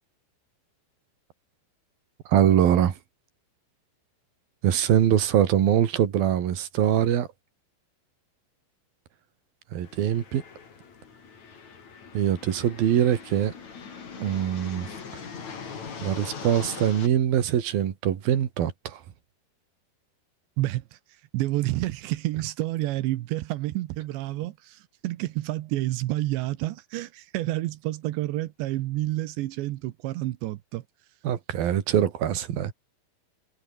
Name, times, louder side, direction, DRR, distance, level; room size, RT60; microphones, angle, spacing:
voice 1, 2.3-2.9 4.6-7.3 9.7-10.4 12.1-13.5 14.2-14.9 16.0-19.0 31.2-32.7, right 10 dB, 55° right, 3.4 m, -23 dB
sound 1, 9.8-17.1, left 6 dB, 40° left, 4.4 m, -41 dB
voice 2, 20.6-21.0 21.3-30.8, right 17 dB, 75° right, 2.9 m, -29 dB
omnidirectional pair, 5.8 m